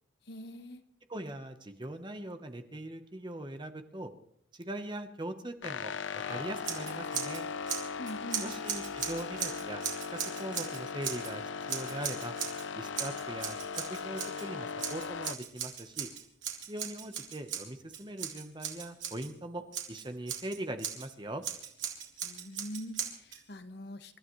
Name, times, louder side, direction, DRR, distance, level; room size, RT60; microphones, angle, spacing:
voice 1, 0.3-0.8 8.0-8.4 22.2-24.2, equal, 60° left, 8 dB, 1.2 m, -43 dB
voice 2, 1.1-4.1 4.5-7.5 8.4-9.8 10.4-12.4 12.7-13.6 13.9-16.1 16.6-21.4, right 1 dB, 25° right, 7 dB, 1.1 m, -41 dB
sound 1, 5.6-15.4, left 5 dB, 80° left, 0.6 m, -38 dB
Scissors, 6.6-7.4 7.7-11.3 11.7-12.7 13.0-14.5 14.8-19.3 19.7-21.1 21.4-23.4, right 8 dB, 90° right, 2.9 m, -38 dB
28.5 x 13.0 x 3.2 m, 0.66 s
head